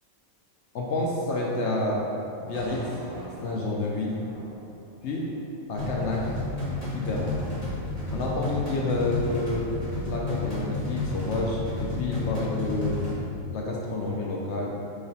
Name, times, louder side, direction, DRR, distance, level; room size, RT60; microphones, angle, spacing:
voice 1, 0.7-2.0 2.4-2.9 3.4-4.2 5.0-5.3 5.7-6.3 6.9-7.3 8.1-9.8 10.0-13.1 13.5-14.7, left 2 dB, 65° left, -3 dB, 0.8 m, -29 dB
sound 1, 2.5-6.7, equal, 40° right, 0.6 m, -43 dB
sound 2, 5.8-13.2, left 2 dB, 30° left, 1.3 m, -31 dB
4.9 x 2.4 x 3.9 m, 2.7 s
omnidirectional pair, 1.4 m